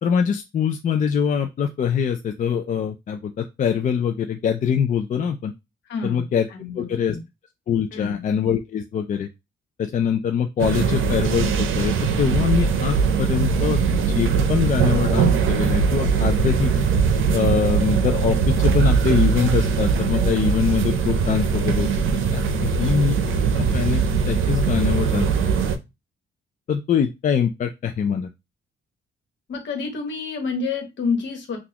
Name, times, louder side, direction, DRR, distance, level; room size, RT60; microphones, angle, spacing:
voice 1, 0.0-5.5 6.0-6.5 6.7-7.2 7.7-9.3 9.8-13.8 14.1-16.7 17.3-21.9 22.3-23.2 23.5-25.3 26.7-28.3, left 7 dB, 40° left, 6 dB, 0.4 m, -23 dB
voice 2, 5.9-6.3 6.5-7.2 7.9-8.2 29.5-31.6, left 4 dB, 65° left, 4 dB, 1.2 m, -28 dB
sound 1, 10.6-25.8, right 6 dB, 85° right, 0.6 m, -21 dB
3.9 x 2.4 x 2.9 m, 0.23 s
cardioid pair, 120°, 20 cm